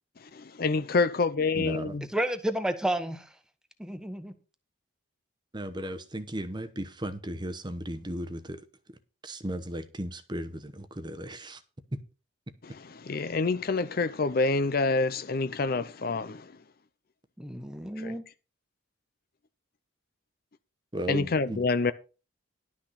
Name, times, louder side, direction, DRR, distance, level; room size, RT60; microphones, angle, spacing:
voice 1, 0.2-2.1 12.6-16.5 18.0-18.2 21.1-21.9, left 3 dB, 45° left, 0.5 m, -27 dB
voice 2, 1.5-2.0 5.5-8.6 9.2-11.6 11.9-12.0 20.9-21.6, right 1 dB, 20° right, 0.9 m, -36 dB
voice 3, 2.1-3.3 3.8-4.3 17.4-18.2, right 1 dB, 5° right, 1.2 m, -31 dB
12.0 x 6.3 x 5.7 m
head